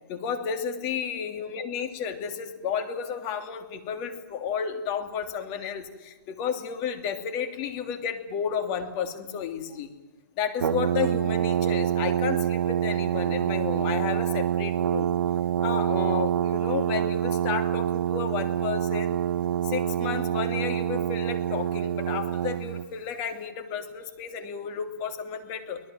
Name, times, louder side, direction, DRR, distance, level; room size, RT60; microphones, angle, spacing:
voice 1, 0.1-9.9 10.4-15.1 15.6-19.2 19.6-25.8, left 7 dB, 30° left, 7 dB, 2.8 m, -32 dB
Brass instrument, 10.6-22.9, right 10 dB, 80° right, 0.8 m, -26 dB
24.5 x 18.0 x 9.2 m, 1.1 s
hypercardioid pair, 150°, 12 cm